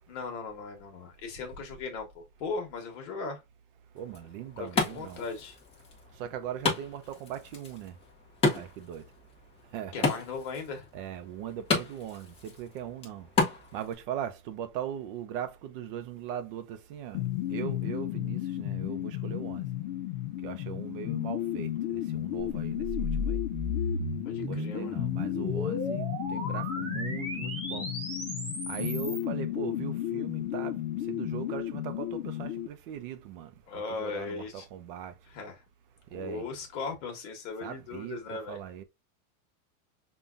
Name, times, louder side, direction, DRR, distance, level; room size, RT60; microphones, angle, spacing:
voice 1, 0.1-3.4 4.6-5.6 9.9-10.9 24.2-25.0 33.7-34.7 35.2-35.6 36.1-38.6, left 4 dB, 55° left, 1.2 m, -38 dB
Wood, 4.0-14.0, left 4 dB, 15° left, 0.6 m, -33 dB
voice 2, 4.0-5.2 6.2-7.9 8.5-9.0 9.7-10.1 10.9-13.3 13.7-17.2 17.5-19.6 20.4-23.4 24.3-27.9 28.7-30.8 31.1-33.5 34.0-35.1 36.1-36.5 37.6-38.2 38.5-38.8, right 10 dB, 40° right, 0.5 m, -39 dB
sound 1, 17.1-32.7, left 13 dB, 70° left, 0.6 m, -33 dB
sound 2, 22.4-29.2, left 1 dB, 15° right, 1.2 m, -35 dB
5.4 x 2.3 x 2.4 m
supercardioid pair, 155°, 44 cm